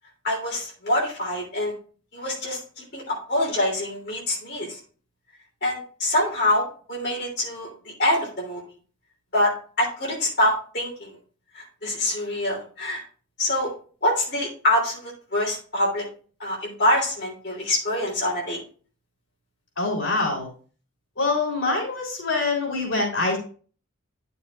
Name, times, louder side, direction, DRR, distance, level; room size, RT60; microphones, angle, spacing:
voice 1, 0.2-1.7 2.1-4.8 5.6-7.7 8.0-8.6 9.3-11.1 11.5-13.0 13.4-13.7 14.0-16.1 16.4-18.6, left 1 dB, 55° left, -3 dB, 3.3 m, -25 dB
voice 2, 19.8-20.5 21.2-23.4, left 3 dB, 85° left, -1 dB, 3.7 m, -24 dB
10.5 x 6.9 x 2.5 m, 0.41 s
head